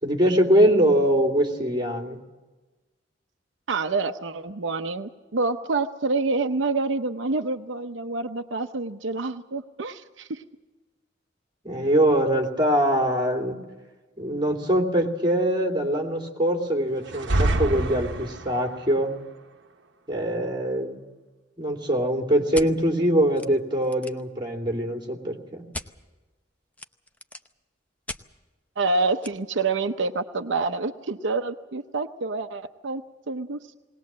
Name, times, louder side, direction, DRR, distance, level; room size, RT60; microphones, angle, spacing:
voice 1, 0.0-2.2 11.6-13.6 14.2-19.1 20.1-21.0 21.6-25.6, right 1 dB, 25° right, 2 dB, 2.9 m, -23 dB
voice 2, 3.7-10.4 28.8-33.8, right 3 dB, 85° right, 7 dB, 0.8 m, -27 dB
sound 1, 17.1-18.7, right 2 dB, 70° right, 1.1 m, -25 dB
sound 2, 22.5-22.7 23.4-23.5 23.8-24.3 25.7-25.9 26.7-27.5 28.1-28.2 29.2-29.3, left 1 dB, 10° left, 0.8 m, -37 dB
20.0 x 19.5 x 7.5 m, 1.2 s
head